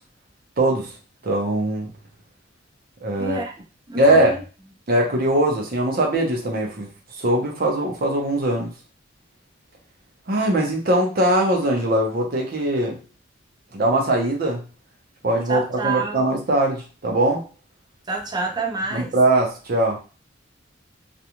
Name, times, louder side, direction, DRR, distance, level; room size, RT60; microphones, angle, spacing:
voice 1, 0.6-0.9 1.2-1.9 3.0-3.4 3.9-4.3 4.9-6.9 7.2-8.7 10.3-13.0 13.7-14.6 15.2-17.4 18.9-20.0, right 1 dB, 50° right, 0 dB, 0.7 m, -21 dB
voice 2, 3.2-3.5 3.9-4.4 15.5-16.2 18.1-19.1, right 4 dB, 20° right, 1 dB, 0.5 m, -27 dB
2.5 x 2.3 x 2.9 m, 0.34 s
head